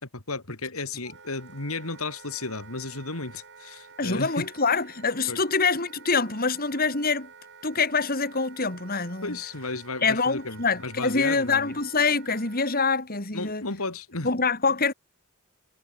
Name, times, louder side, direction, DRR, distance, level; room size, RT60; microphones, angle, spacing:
voice 1, 0.0-4.5 5.3-5.4 9.2-11.7 13.3-14.3, left 3 dB, 80° left, 3.4 m, -34 dB
Wind instrument woodwind instrument, 1.0-12.8, right 5 dB, 55° right, 5.0 m, -50 dB
voice 2, 4.0-7.3 7.6-9.4 10.0-13.6 14.2-14.9, left 4 dB, 45° left, 3.7 m, -25 dB
head